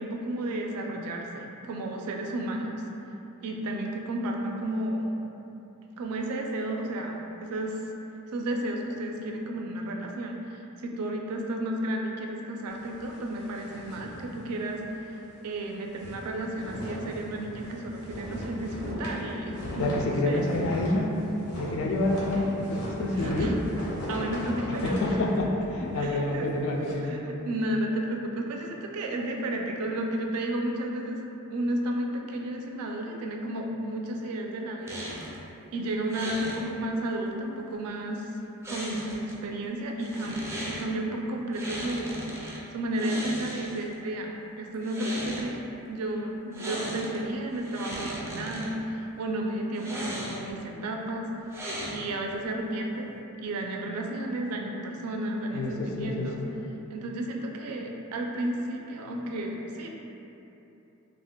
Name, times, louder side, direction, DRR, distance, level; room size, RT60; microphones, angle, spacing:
voice 1, 0.0-2.7 3.4-5.1 6.0-7.8 8.3-15.1 15.4-20.4 23.1-23.6 24.1-25.0 25.9-26.5 27.0-31.2 31.5-35.0 35.7-38.3 38.7-42.2 42.7-51.3 51.9-53.1 53.4-56.4 56.9-59.9, right 1 dB, 80° right, 1 dB, 0.4 m, -32 dB
sound 1, 12.7-15.0 15.3-15.4 15.8-26.9, left 1 dB, 80° left, 0.7 m, -38 dB
voice 2, 19.8-21.1 21.6-23.5 24.7-27.2 55.5-56.5, left 2 dB, 60° left, 0 dB, 0.4 m, -28 dB
sound 2, 34.9-35.4 36.1-36.6 38.6-39.3 40.0-40.9 41.5-42.6 42.9-43.9 44.7-45.5 46.5-47.2 47.5-48.7 49.7-50.6 51.5-52.2, equal, 10° right, 0.4 m, -37 dB
2.4 x 2.2 x 3.6 m, 2.9 s
head